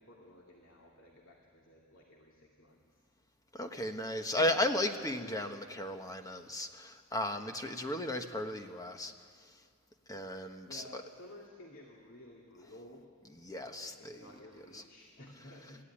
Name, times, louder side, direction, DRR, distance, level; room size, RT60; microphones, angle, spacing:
voice 1, 0.0-2.8 10.6-13.1 13.7-15.8, left 1 dB, 60° left, -2 dB, 2.5 m, -54 dB
voice 2, 3.5-9.1 10.1-11.0 13.4-14.2 14.7-14.8, left 1 dB, 15° left, 6 dB, 1.1 m, -35 dB
27.0 x 15.0 x 10.0 m, 2.1 s
head